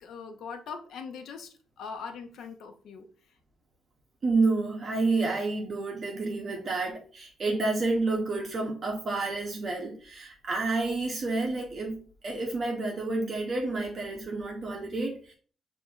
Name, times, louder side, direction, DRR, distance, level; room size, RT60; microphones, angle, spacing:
voice 1, 0.0-3.1, left 5 dB, 70° left, 7 dB, 0.6 m, -41 dB
voice 2, 4.2-15.3, right 3 dB, 35° right, 0 dB, 0.7 m, -29 dB
6.7 x 2.5 x 2.4 m, 0.41 s
cardioid pair, 170°, 0 cm